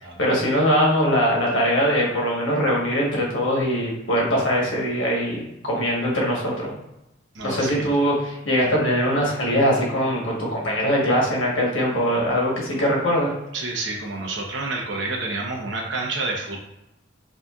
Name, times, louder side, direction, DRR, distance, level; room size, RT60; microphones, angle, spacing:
voice 1, 0.2-6.7 7.4-13.3, equal, 75° left, -3 dB, 1.3 m, -22 dB
voice 2, 7.3-7.9 13.5-16.6, right 3 dB, 65° right, -1 dB, 0.9 m, -29 dB
5.0 x 2.7 x 2.4 m, 0.90 s
head